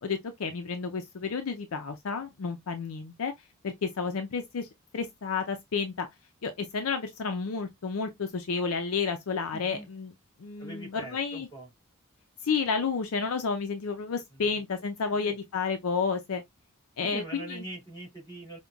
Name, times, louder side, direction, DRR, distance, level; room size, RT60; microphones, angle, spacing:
voice 1, 0.0-3.3 3.6-4.7 4.9-6.1 6.4-10.1 10.4-11.5 12.4-16.4 17.0-17.6, left 5 dB, 70° left, 0.5 m, -31 dB
voice 2, 9.5-9.9 10.6-11.7 14.3-14.6 15.0-15.3 17.0-18.6, right 2 dB, 20° left, 2.6 m, -43 dB
5.2 x 2.1 x 2.2 m
head